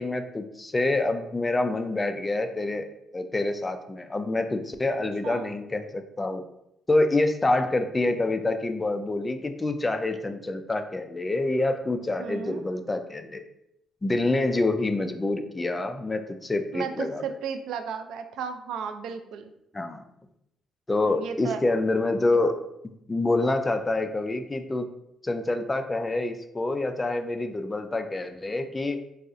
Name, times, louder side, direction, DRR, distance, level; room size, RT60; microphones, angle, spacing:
voice 1, 0.0-2.9 3.1-6.4 6.9-13.4 14.0-17.2 19.7-20.0 20.9-22.6 23.1-24.9 25.2-29.0, left 2 dB, 20° left, 7 dB, 0.3 m, -27 dB
voice 2, 12.2-12.6 16.7-19.5 21.0-21.7, right 6 dB, 80° right, 8 dB, 0.3 m, -34 dB
4.0 x 2.4 x 2.5 m, 0.80 s
cardioid pair, 90°, 0 cm